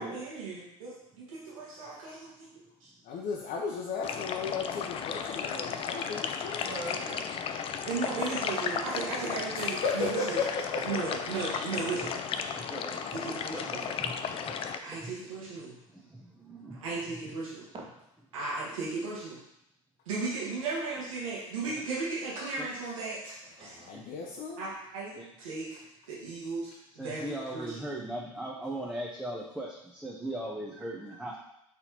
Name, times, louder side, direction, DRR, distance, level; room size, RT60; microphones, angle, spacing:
voice 1, 0.0-2.9 7.9-10.4 10.8-12.2 13.1-13.8 14.8-15.8 16.7-17.6 18.3-19.4 20.0-23.8 24.6-25.7 26.1-28.1, right 3 dB, 80° right, -6 dB, 1.4 m, -36 dB
voice 2, 3.1-6.7 9.5-10.5 10.7-10.8 11.1-11.2 23.6-24.7, left 5 dB, 50° left, -2 dB, 0.7 m, -35 dB
sound 1, 4.0-14.8, left 7 dB, 35° left, 0.4 m, -35 dB
voice 3, 6.6-7.7 8.0-8.6 8.9-9.3 10.7-11.0 17.7-17.8 23.4-23.9, right 2 dB, 30° right, -1 dB, 1.2 m, -43 dB
voice 4, 11.2-11.7 11.9-12.2 12.5-13.1 13.5-14.6 15.0-15.1 15.9-16.8 21.7-21.8 22.6-22.7 23.9-24.0 25.2-25.3 27.0-31.4, right 1 dB, 5° right, -3 dB, 0.6 m, -39 dB
4.2 x 4.2 x 2.8 m, 0.80 s
hypercardioid pair, 80°, 17 cm